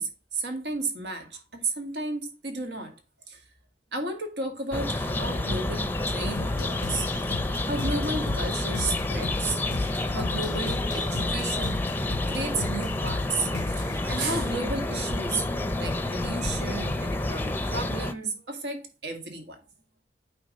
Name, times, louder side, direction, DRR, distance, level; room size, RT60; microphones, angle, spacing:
voice 1, 0.0-3.0 3.3-3.4 3.9-11.9 12.3-15.4 15.8-19.6, right 3 dB, 85° right, 1.7 m, -33 dB
sound 1, 4.7-18.1, left 2 dB, 10° left, 0.5 m, -29 dB
sound 2, 6.3-14.0, left 3 dB, 80° left, 0.4 m, -36 dB
8.8 x 3.4 x 5.2 m
head